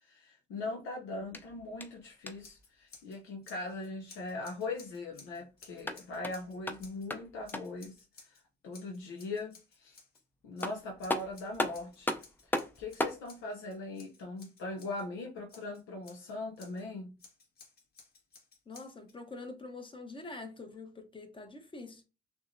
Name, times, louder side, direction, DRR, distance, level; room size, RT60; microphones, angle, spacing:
voice 1, 0.0-10.0 10.4-12.1 12.5-17.1, left 2 dB, 90° left, 0.7 m, -40 dB
sound 1, 1.2-2.6 5.6-7.9 10.1-10.2 10.6-13.2, left 1 dB, 10° left, 0.5 m, -37 dB
Scissors, 2.4-3.2 3.4-7.1 7.4-8.4 8.7-10.2 10.6-15.0 15.5-16.8 17.2-19.2, left 4 dB, 50° left, 1.6 m, -57 dB
voice 2, 18.7-22.0, left 3 dB, 25° left, 0.8 m, -45 dB
5.8 x 2.1 x 2.6 m
cardioid pair, 90°, 20 cm